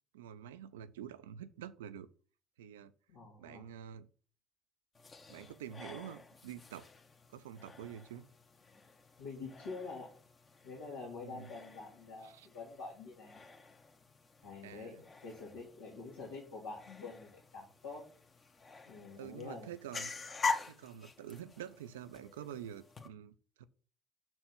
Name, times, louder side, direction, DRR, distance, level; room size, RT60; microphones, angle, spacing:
voice 1, 0.1-2.1 2.6-2.9 3.4-4.1 5.3-6.9 7.3-8.3 11.2-11.5 12.2-12.5 14.6-15.0 19.1-20.1 20.7-23.6, right 9 dB, 80° right, 0.4 m, -47 dB
voice 2, 3.1-3.7 9.2-10.1 10.6-13.4 14.4-18.1 18.9-19.7, left 4 dB, 85° left, 2.1 m, -46 dB
sound 1, 4.9-23.1, left 4 dB, 40° left, 1.2 m, -45 dB
6.3 x 4.5 x 5.9 m
hypercardioid pair, 50°, 0 cm